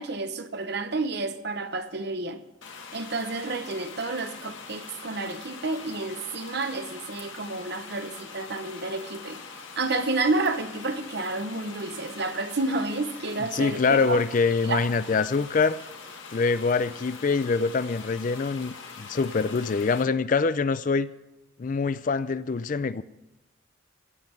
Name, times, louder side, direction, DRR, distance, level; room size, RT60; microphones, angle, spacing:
voice 1, 0.0-2.4 2.9-9.4 9.8-14.2 14.6-14.9, right 3 dB, 55° right, 1.0 m, -30 dB
sound 1, 2.6-20.0, left 5 dB, 70° left, 1.8 m, -43 dB
voice 2, 13.5-15.8 16.3-21.1 21.6-23.0, left 4 dB, 40° left, 0.4 m, -24 dB
15.5 x 5.9 x 9.5 m
head